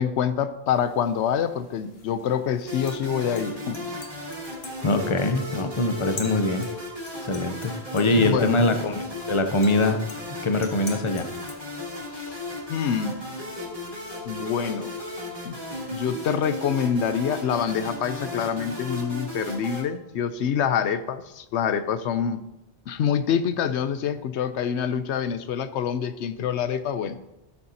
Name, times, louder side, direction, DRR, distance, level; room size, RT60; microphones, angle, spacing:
voice 1, 0.0-3.9 8.1-8.7 12.1-12.4 12.7-13.2 14.2-14.9 15.4-15.6 15.9-22.4 22.9-27.2, left 8 dB, 90° left, 12 dB, 0.9 m, -26 dB
sound 1, 0.7-12.4, left 3 dB, 60° left, 1.5 m, -47 dB
sound 2, 2.7-19.8, left 1 dB, 30° right, 2.8 m, -35 dB
voice 2, 4.8-6.7 7.2-9.0 9.3-10.0 10.4-11.3, left 2 dB, 35° left, 7 dB, 0.6 m, -23 dB
13.0 x 7.0 x 2.8 m, 0.90 s
omnidirectional pair, 1.1 m